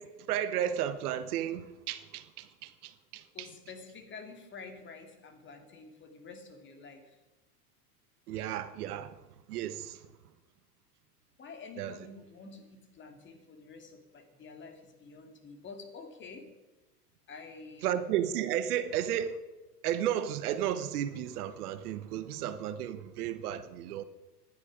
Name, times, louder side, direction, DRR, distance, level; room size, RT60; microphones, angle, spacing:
voice 1, 0.0-3.5 8.3-9.2 9.5-10.1 11.8-12.0 17.8-19.4 19.8-24.0, right 10 dB, 70° right, 1.3 m, -33 dB
voice 2, 3.3-7.2 11.4-16.5 17.3-17.9, left 4 dB, 25° left, 2.5 m, -48 dB
16.0 x 11.0 x 5.1 m
supercardioid pair, 125°, 47 cm